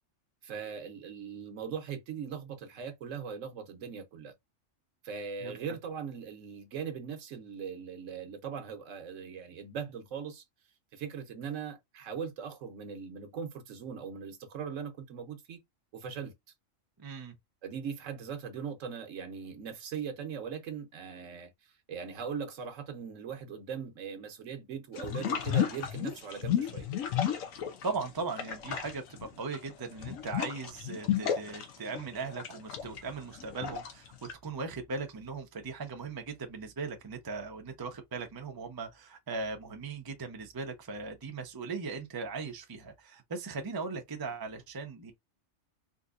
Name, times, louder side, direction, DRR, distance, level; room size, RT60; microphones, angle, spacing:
voice 1, 0.4-4.3 5.0-10.4 10.9-15.6 15.9-16.3 17.6-21.5 21.9-26.9, right 6 dB, 70° right, 1.1 m, -40 dB
voice 2, 5.4-5.8 17.0-17.3 27.8-45.1, right 4 dB, 30° right, 0.4 m, -39 dB
sound 1, 25.0-28.1 28.3-34.3, left 9 dB, 80° left, 1.2 m, -33 dB
3.8 x 2.7 x 2.4 m
omnidirectional pair, 1.4 m